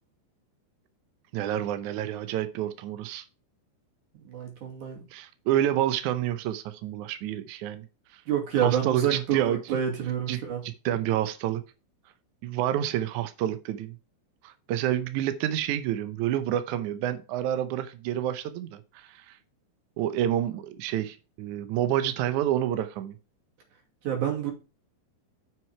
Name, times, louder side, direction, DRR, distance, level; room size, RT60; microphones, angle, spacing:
voice 1, 1.3-3.3 5.1-7.9 8.1-8.2 8.6-9.6 10.3-11.6 12.4-14.0 14.4-19.4 20.0-23.2, right 11 dB, 80° right, 10 dB, 1.7 m, -28 dB
voice 2, 4.3-5.0 8.3-10.6 24.0-24.5, right 9 dB, 55° right, 0 dB, 3.8 m, -28 dB
7.6 x 6.2 x 4.8 m, 0.32 s
omnidirectional pair, 4.4 m